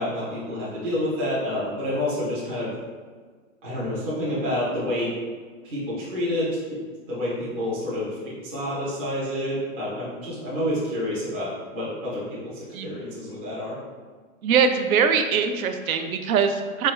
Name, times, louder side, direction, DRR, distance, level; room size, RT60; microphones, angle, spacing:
voice 1, 0.0-2.7 3.6-5.1 5.6-6.6 7.1-12.4 12.8-13.7, left 1 dB, 10° right, -10 dB, 0.3 m, -28 dB
voice 2, 14.4-16.9, right 6 dB, 90° right, 7 dB, 0.5 m, -22 dB
4.2 x 2.3 x 3.1 m, 1.5 s
hypercardioid pair, 145°, 41 cm